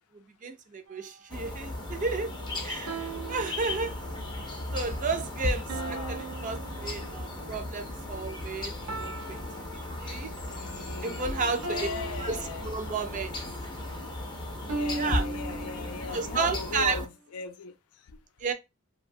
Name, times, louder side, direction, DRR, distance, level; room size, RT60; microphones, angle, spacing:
voice 1, 0.1-2.3 2.6-3.9 4.7-9.4 9.7-10.3 11.0-11.9 12.2-13.4 14.9-15.2 16.1-17.0 18.4-18.5, right 4 dB, 35° right, 0.4 m, -32 dB
sound 1, 0.9-1.3 2.9-4.3 5.7-7.5 8.9-10.5 11.6-13.3 14.7-16.3, right 3 dB, 85° right, 0.7 m, -39 dB
sound 2, 1.3-17.1, left 1 dB, 20° left, 0.5 m, -36 dB
sound 3, 1.8-12.5, right 4 dB, 60° right, 1.0 m, -55 dB
voice 2, 5.7-6.3 10.4-12.6 14.0-14.1 14.7-17.7, left 5 dB, 90° left, 0.4 m, -39 dB
2.7 x 2.2 x 2.5 m
head